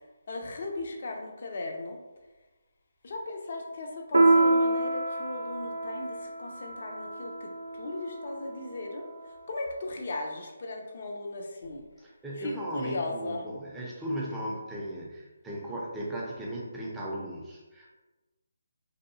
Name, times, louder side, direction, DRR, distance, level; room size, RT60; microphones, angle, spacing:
voice 1, 0.3-2.0 3.0-9.1 9.5-11.8 12.4-13.4, left 2 dB, 50° left, 2 dB, 0.5 m, -37 dB
Piano, 4.1-9.1, right 2 dB, 80° right, 0.5 m, -27 dB
voice 2, 12.0-17.9, right 1 dB, 10° right, -5 dB, 0.5 m, -36 dB
2.8 x 2.3 x 2.6 m, 1.1 s
figure-of-eight pair, 150°, 0 cm